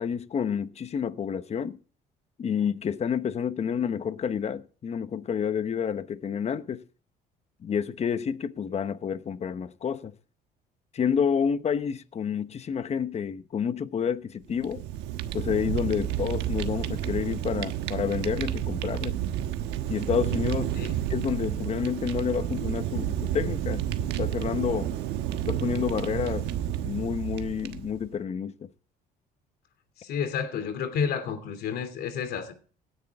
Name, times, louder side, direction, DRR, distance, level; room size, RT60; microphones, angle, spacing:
voice 1, 0.0-1.8 2.4-6.8 7.6-10.1 10.9-14.8 15.3-19.2 19.9-20.7 21.1-24.9 25.5-26.5 26.8-28.5, left 7 dB, 40° left, 1.0 m, -29 dB
Fire, 14.5-28.1, right 11 dB, 90° right, 1.3 m, -30 dB
voice 2, 30.0-32.5, left 7 dB, 70° left, 2.9 m, -30 dB
17.5 x 10.0 x 3.6 m
cardioid pair, 110°, 17 cm